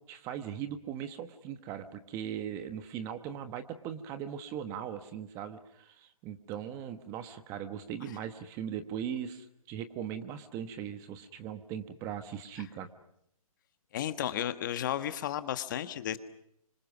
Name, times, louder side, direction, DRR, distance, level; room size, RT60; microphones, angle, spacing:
voice 1, 0.0-12.9, right 9 dB, 15° right, 10 dB, 1.2 m, -39 dB
voice 2, 13.9-16.2, left 11 dB, 35° left, 12 dB, 1.3 m, -33 dB
27.5 x 25.5 x 6.1 m, 0.72 s
hypercardioid pair, 155°, 19 cm